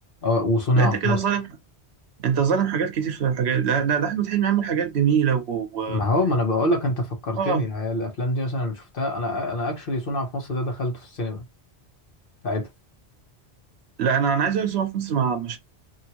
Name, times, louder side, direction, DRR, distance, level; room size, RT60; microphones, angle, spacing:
voice 1, 0.2-1.2 5.9-11.4 12.4-12.7, left 1 dB, 55° left, 1.1 m, -25 dB
voice 2, 0.8-1.5 2.2-6.0 7.4-7.7 14.0-15.6, right 7 dB, 75° right, 1.0 m, -23 dB
2.8 x 2.5 x 2.9 m
omnidirectional pair, 1.1 m